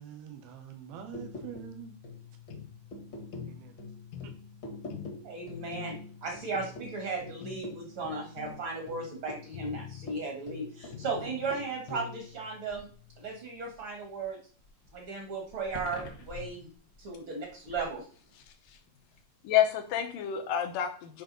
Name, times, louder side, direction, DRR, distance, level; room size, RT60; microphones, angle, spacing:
voice 1, 0.0-2.0 3.5-3.8 4.2-4.3, right 9 dB, 85° right, 2.9 m, -45 dB
sound 1, 0.9-14.3 14.6-18.0 18.4-18.7, left 2 dB, 50° left, 1.5 m, -46 dB
sound 2, 2.5-2.7 3.3-3.6 4.1-4.4 4.9-5.2 5.7-6.0 6.5-6.8 7.4-7.7 8.4-8.7 9.5-10.2 10.9-11.6, left 10 dB, 90° left, 1.5 m, -43 dB
voice 2, 5.2-12.9 13.2-14.4 14.9-16.7 17.0-18.0, right 4 dB, 55° right, 1.5 m, -36 dB
voice 3, 18.3-18.8 19.4-21.2, left 10 dB, 70° left, 2.4 m, -29 dB
10.0 x 3.4 x 5.3 m
omnidirectional pair, 4.3 m